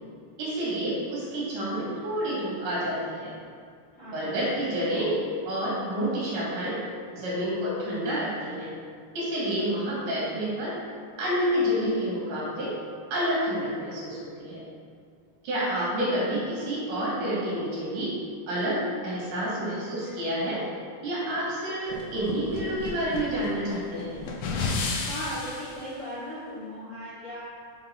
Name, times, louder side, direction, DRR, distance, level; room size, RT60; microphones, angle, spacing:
voice 1, 0.4-3.4 4.0-6.8 7.1-8.7 9.2-10.8 11.2-12.7 13.1-14.7 15.4-18.2 18.5-20.7 21.0-24.2, equal, 80° right, -6 dB, 3.5 m, -29 dB
voice 2, 3.9-5.0 15.8-16.0 25.0-27.5, equal, 45° left, -11 dB, 0.9 m, -38 dB
sound 1, 21.9-25.8, left 4 dB, 75° left, 1.3 m, -32 dB
6.7 x 4.0 x 5.8 m, 2.1 s
omnidirectional pair, 3.5 m